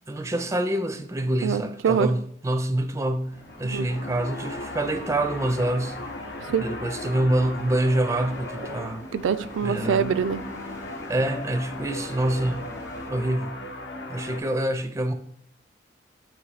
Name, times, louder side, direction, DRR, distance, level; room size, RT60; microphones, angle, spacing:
voice 1, 0.1-3.3 3.6-6.0 6.6-9.0 9.6-10.1 11.1-12.7 13.1-13.6 14.1-15.1, right 1 dB, 15° right, 0.4 m, -26 dB
voice 2, 1.4-2.1 3.6-3.9 6.4-6.7 9.1-10.4, right 7 dB, 85° right, 0.3 m, -24 dB
sound 1, 2.9-13.1, equal, 15° left, 0.7 m, -46 dB
sound 2, 3.3-14.4, left 1 dB, 65° left, 0.8 m, -37 dB
7.1 x 3.0 x 4.8 m
head